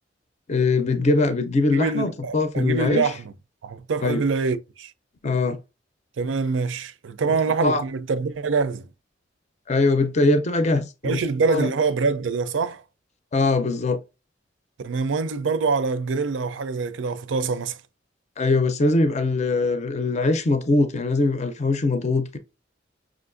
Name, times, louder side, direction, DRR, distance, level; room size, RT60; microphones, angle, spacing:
voice 1, 0.5-3.0 4.0-4.2 5.2-5.6 7.6-7.8 9.7-11.2 11.5-11.7 13.3-14.0 18.4-22.4, left 3 dB, 40° left, 0.5 m, -22 dB
voice 2, 1.7-3.3 3.6-4.9 6.2-8.9 11.0-12.8 14.8-17.8, right 4 dB, 80° right, 0.5 m, -25 dB
6.0 x 2.5 x 2.5 m
head